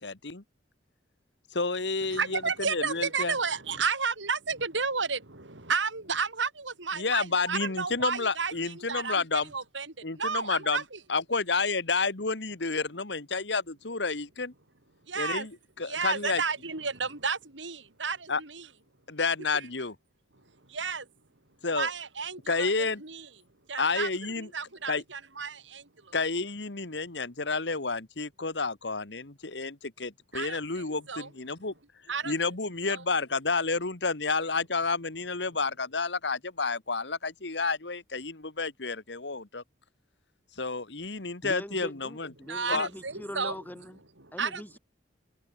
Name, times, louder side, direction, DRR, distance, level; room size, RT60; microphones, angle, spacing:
voice 1, 0.0-0.4 1.5-3.3 7.0-9.5 10.0-10.8 11.1-14.5 15.2-15.5 15.8-16.4 18.3-18.4 19.1-20.0 21.6-21.9 22.5-23.0 23.8-24.5 24.9-25.0 26.1-31.7 32.3-39.6 40.6-42.3 42.7-42.9, left 4 dB, 65° left, 1.8 m, -30 dB
voice 2, 2.1-11.0 15.1-15.5 15.8-18.7 19.5-19.7 20.7-21.1 21.7-23.3 23.7-24.1 24.4-26.1 30.3-31.3 32.1-32.3 32.9-33.0 42.4-43.6 44.2-44.8, right 5 dB, 85° right, 4.0 m, -32 dB
voice 3, 41.4-44.0 44.3-44.8, equal, 10° left, 3.8 m, -42 dB
open air
head